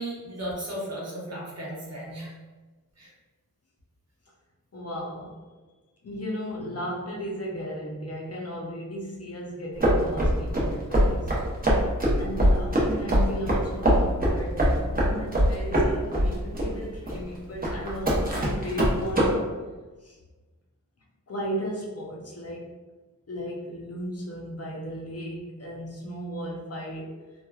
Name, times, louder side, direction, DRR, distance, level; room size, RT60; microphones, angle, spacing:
voice 1, 0.0-2.3 3.0-3.1, right 1 dB, 50° right, -5 dB, 0.9 m, -35 dB
voice 2, 4.7-5.4 6.0-11.6 12.2-19.6 20.0-20.2 21.3-22.8 23.3-27.2, equal, 45° left, -2 dB, 0.6 m, -35 dB
sound 1, 9.8-19.3, equal, 25° right, 0.8 m, -23 dB
2.9 x 2.2 x 2.3 m, 1.2 s
wide cardioid pair, 75°, 34 cm